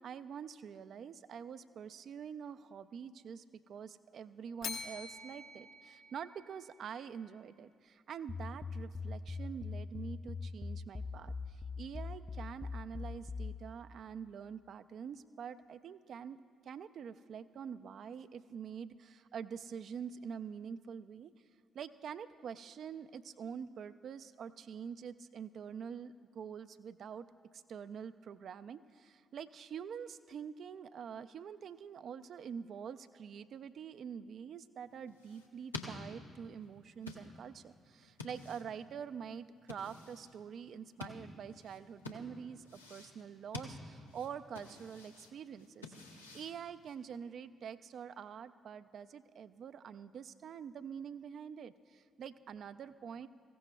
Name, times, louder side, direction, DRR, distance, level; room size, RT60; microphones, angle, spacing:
voice 1, 0.0-16.4 16.6-21.3 21.7-27.3 27.5-53.3, right 7 dB, 55° right, 12 dB, 0.4 m, -46 dB
Bell, 4.6-6.8, left 4 dB, 55° left, 0.9 m, -46 dB
sound 1, 8.3-13.6, left 4 dB, 25° left, 0.5 m, -42 dB
sound 2, 34.8-47.2, left 3 dB, 90° left, 0.8 m, -50 dB
23.5 x 16.0 x 2.3 m, 2.1 s
figure-of-eight pair, 40°, 0 cm